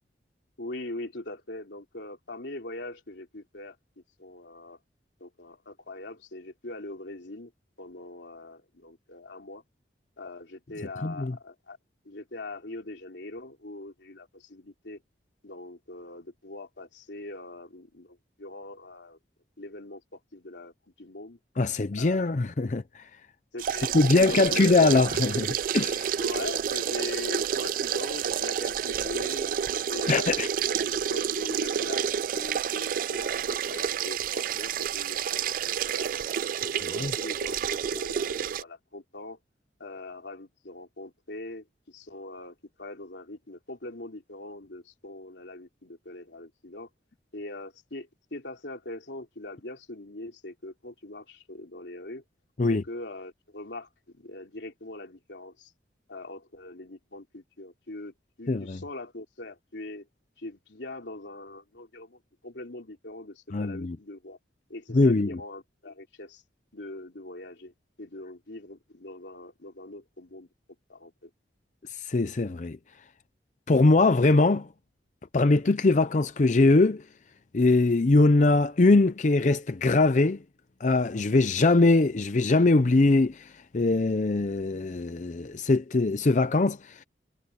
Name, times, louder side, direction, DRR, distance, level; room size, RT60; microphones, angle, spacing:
voice 1, 0.6-3.8 4.2-4.8 5.2-7.5 7.8-9.6 10.2-11.8 12.0-15.0 15.4-19.2 19.6-21.4 21.9-22.3 23.5-24.9 26.2-30.4 30.8-36.2 36.6-39.4 39.8-46.9 47.3-52.2 52.7-55.7 56.1-60.1 60.4-64.4 64.7-66.4 66.7-67.7 68.0-70.5 70.9-71.3, left 2 dB, 85° left, 3.2 m, -42 dB
voice 2, 11.0-11.3 21.6-23.0 23.9-26.2 30.1-30.5 37.0-37.1 52.6-52.8 58.5-58.8 63.5-64.0 64.9-65.4 71.9-72.8 73.7-74.7 75.3-77.0 77.5-80.4 80.8-87.0, left 2 dB, 45° left, 0.6 m, -22 dB
sound 1, 23.6-38.6, right 8 dB, 50° right, 0.3 m, -29 dB
head